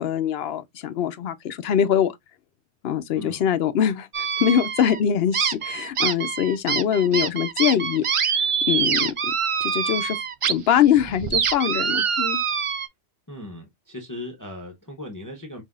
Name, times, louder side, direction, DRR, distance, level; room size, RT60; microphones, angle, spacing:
voice 1, 0.0-2.1 2.8-9.1 9.6-10.2 10.4-12.4, left 9 dB, 75° left, 0.8 m, -23 dB
sound 1, 4.1-5.0 5.3-10.5 10.9-12.9, right 7 dB, 55° right, 0.3 m, -25 dB
voice 2, 13.3-15.6, left 1 dB, 20° left, 0.8 m, -38 dB
5.6 x 2.6 x 2.4 m
omnidirectional pair, 1.1 m